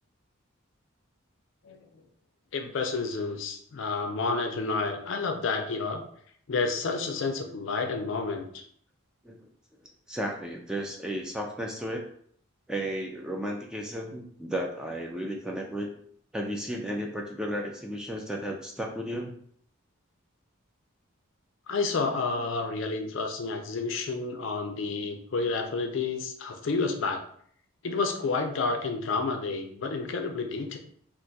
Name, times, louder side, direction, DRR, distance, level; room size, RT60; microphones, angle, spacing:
voice 1, 2.5-6.0 6.5-8.6 21.7-27.2 27.8-30.8, left 4 dB, 65° left, 5 dB, 0.4 m, -30 dB
voice 2, 10.1-12.1 12.7-15.9 16.3-19.4, equal, 5° right, 0 dB, 0.3 m, -33 dB
2.4 x 2.3 x 3.9 m, 0.62 s
head